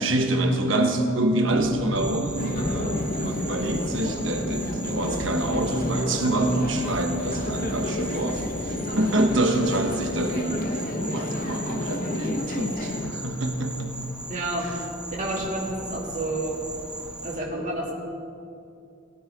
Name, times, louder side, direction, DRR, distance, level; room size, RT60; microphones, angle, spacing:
voice 1, 0.0-13.9 15.4-15.5, right 1 dB, 70° right, 4 dB, 1.2 m, -26 dB
sound 1, 1.5-10.3, left 1 dB, 20° right, 3.2 m, -38 dB
Insect, 1.9-17.4, right 1 dB, 5° right, 0.8 m, -38 dB
salle.spectacle.presque.remplie, 2.4-13.1, left 1 dB, 45° left, 0.9 m, -31 dB
voice 2, 14.3-14.7 15.1-16.6 17.2-17.9, right 2 dB, 40° right, -4 dB, 2.4 m, -29 dB
18.0 x 9.6 x 3.6 m, 2.5 s
head